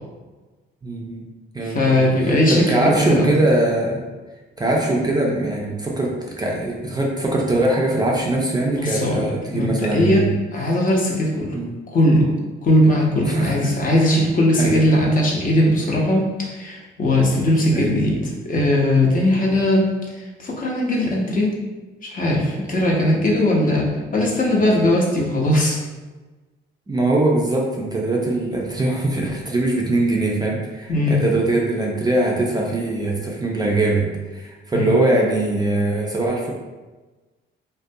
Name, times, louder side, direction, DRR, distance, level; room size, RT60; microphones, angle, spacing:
voice 1, 0.8-1.2 1.5-4.0 4.6-10.3 10.6-10.8 11.5-11.7 13.3-13.7 14.0-14.1 14.6-14.8 17.7-17.9 26.9-36.5, right 2 dB, 20° right, -2 dB, 0.4 m, -22 dB
voice 2, 1.6-3.3 8.8-9.3 9.5-11.5 11.9-12.3 12.6-21.5 22.0-25.8 30.9-31.2 34.7-34.9, left 1 dB, 40° left, -2 dB, 0.7 m, -19 dB
2.4 x 2.2 x 2.6 m, 1.2 s
cardioid pair, 90°, 20 cm